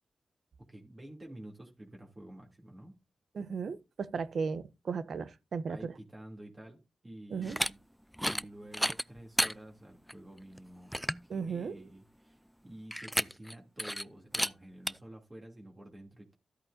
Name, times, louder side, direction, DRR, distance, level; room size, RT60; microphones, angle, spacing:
voice 1, 0.7-2.9 5.7-7.8 8.3-16.3, right 1 dB, 30° right, 3.0 m, -50 dB
voice 2, 3.3-5.9 7.3-7.6 11.3-11.9, right 5 dB, 75° right, 0.8 m, -36 dB
sound 1, 7.4-7.7 8.1-8.4 8.7-9.5 10.1-10.2 10.6-10.7 10.9-11.2 12.9-13.5 13.8-14.0 14.3-14.5 14.9-15.0, equal, ahead, 0.4 m, -31 dB
13.0 x 8.8 x 2.8 m
cardioid pair, 60°, 0 cm